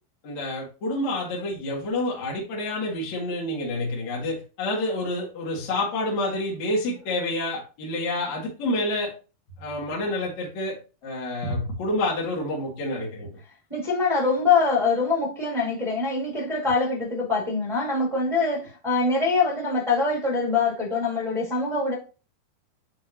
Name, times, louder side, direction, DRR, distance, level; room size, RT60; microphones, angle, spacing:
voice 1, 0.2-9.1 9.6-13.3, left 1 dB, 50° left, 2.9 m, -28 dB
voice 2, 13.7-21.9, left 4 dB, 45° right, 0.4 m, -24 dB
9.9 x 3.5 x 2.8 m
omnidirectional pair, 4.4 m